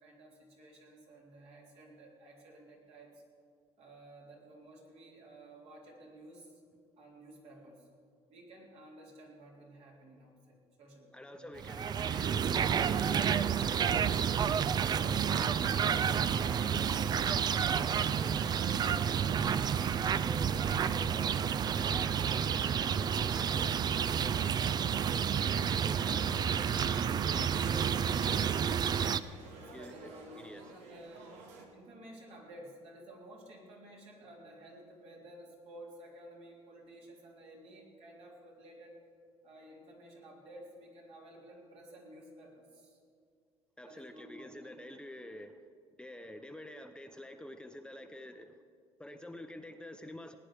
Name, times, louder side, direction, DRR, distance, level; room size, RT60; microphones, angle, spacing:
voice 1, 0.0-3.2 3.8-6.6 7.0-7.9 8.3-11.6 14.9-15.3 25.0-25.6 29.5-31.4 31.7-39.0 39.4-43.0 43.8-44.8, right 1 dB, 65° right, -2 dB, 3.6 m, -53 dB
voice 2, 11.1-14.2 15.0-19.5 19.8-24.5 25.4-28.9 29.7-30.1 30.4-30.6 43.8-45.6 46.0-48.5 49.0-50.4, left 1 dB, 10° left, 6 dB, 0.6 m, -48 dB
sound 1, 11.6-29.2, right 8 dB, 35° right, 0.4 m, -30 dB
sound 2, 24.7-31.7, right 3 dB, 90° right, 1.7 m, -53 dB
19.0 x 9.7 x 5.0 m, 2.3 s
cardioid pair, 115°, 11 cm